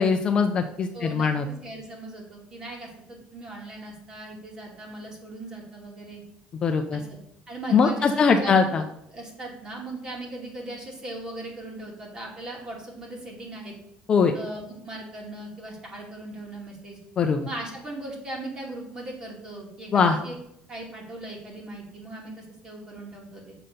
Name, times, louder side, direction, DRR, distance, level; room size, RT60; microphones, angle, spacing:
voice 1, 0.0-1.4 6.6-7.0 7.7-8.8 14.1-14.3 17.2-17.4 19.9-20.2, left 5 dB, 25° left, 5 dB, 0.5 m, -21 dB
voice 2, 0.9-6.2 6.9-7.2 7.5-8.7 9.1-13.7 14.3-17.0 17.4-20.3 20.7-23.5, right 2 dB, 25° right, -1 dB, 2.4 m, -39 dB
6.8 x 5.8 x 6.6 m, 0.78 s
cardioid pair, 170°, 3 cm